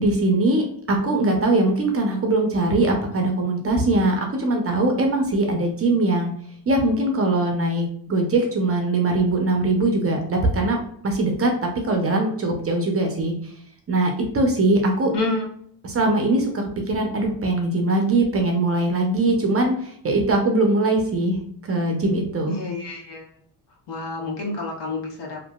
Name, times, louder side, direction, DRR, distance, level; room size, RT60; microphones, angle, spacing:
voice 1, 0.0-6.3 6.7-10.8 11.0-13.4 13.9-15.1 15.8-21.4 21.6-22.6, right 2 dB, 30° right, 2 dB, 0.6 m, -21 dB
voice 2, 15.1-15.5 22.5-23.3 23.9-25.4, left 2 dB, 55° left, 0 dB, 1.0 m, -28 dB
2.8 x 2.5 x 2.3 m, 0.64 s
cardioid pair, 90°, 48 cm